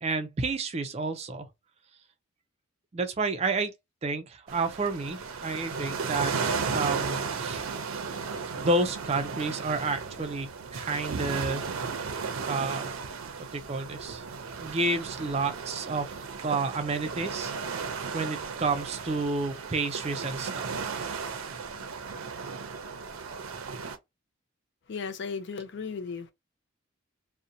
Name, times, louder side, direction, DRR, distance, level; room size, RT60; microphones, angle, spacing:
voice 1, 0.0-1.5 2.9-3.7 4.0-6.3 6.7-7.6 8.6-11.6 12.5-13.0 13.5-14.2 14.6-16.1 16.4-17.5 18.1-20.7, right 3 dB, 30° right, 0.3 m, -30 dB
sound 1, 4.5-24.0, right 5 dB, 85° right, 0.5 m, -35 dB
voice 2, 24.9-26.3, left 5 dB, 55° left, 0.4 m, -35 dB
2.6 x 2.0 x 2.6 m
head